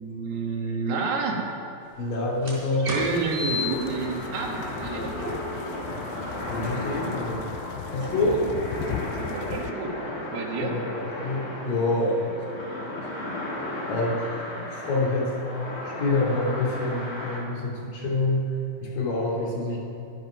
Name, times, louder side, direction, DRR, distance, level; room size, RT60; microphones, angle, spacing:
voice 1, 0.0-1.5 2.8-5.2 8.0-8.4 9.1-10.0 10.3-10.7, right 4 dB, 85° right, 1 dB, 3.7 m, -29 dB
voice 2, 2.0-3.0 6.5-7.5 7.9-8.4 10.6-14.4 14.7-15.3 15.8-18.5 18.8-19.8, left 2 dB, 60° left, -3 dB, 4.0 m, -27 dB
sound 1, 2.3-7.5, left 2 dB, 15° right, 3.7 m, -35 dB
sound 2, 3.0-9.7, left 10 dB, 80° left, 2.3 m, -39 dB
sound 3, 3.4-17.4, left 1 dB, 35° left, 1.8 m, -35 dB
23.0 x 7.9 x 6.2 m, 2.7 s
omnidirectional pair, 4.5 m